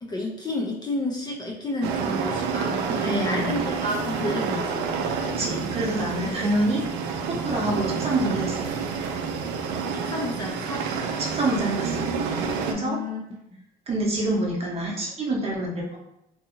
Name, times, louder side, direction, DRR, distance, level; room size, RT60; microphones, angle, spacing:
voice 1, 0.0-4.9 6.2-6.5 9.9-10.9 12.7-13.2, left 1 dB, 25° left, -1 dB, 0.4 m, -31 dB
sound 1, 1.8-12.7, right 5 dB, 90° right, 0.4 m, -28 dB
voice 2, 3.0-3.6 5.4-6.8 7.2-8.7 11.2-12.0 12.6-13.0 13.9-16.0, right 1 dB, 35° right, -2 dB, 0.8 m, -27 dB
2.7 x 2.6 x 2.5 m, 0.85 s
cardioid pair, 110°, 17 cm